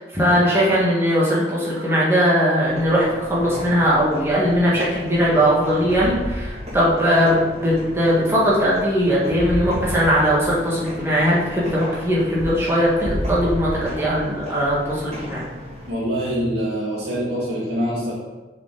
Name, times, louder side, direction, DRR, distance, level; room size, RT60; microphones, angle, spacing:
voice 1, 0.0-7.4 7.6-15.4, equal, 15° right, -6 dB, 1.7 m, -19 dB
sound 1, 2.6-15.9, left 1 dB, 35° right, 2.3 m, -33 dB
voice 2, 15.9-18.1, equal, 70° right, -8 dB, 1.8 m, -24 dB
7.1 x 4.9 x 3.9 m, 1.2 s
head